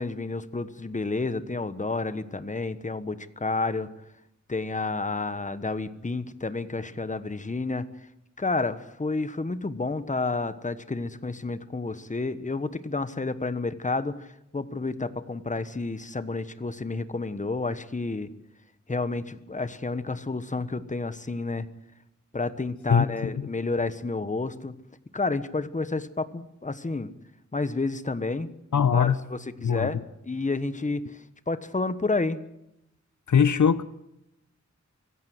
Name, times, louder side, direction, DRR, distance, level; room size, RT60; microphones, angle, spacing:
voice 1, 0.0-3.9 4.5-7.9 8.4-18.3 18.9-21.7 22.3-24.7 25.1-27.1 27.5-28.5 28.9-30.0 30.2-32.4, left 3 dB, 25° left, 13 dB, 1.3 m, -30 dB
voice 2, 22.9-23.3 28.7-29.2 29.6-29.9 33.3-33.8, left 7 dB, 80° left, 15 dB, 0.9 m, -21 dB
25.0 x 16.5 x 8.0 m, 0.85 s
wide cardioid pair, 100°, 29 cm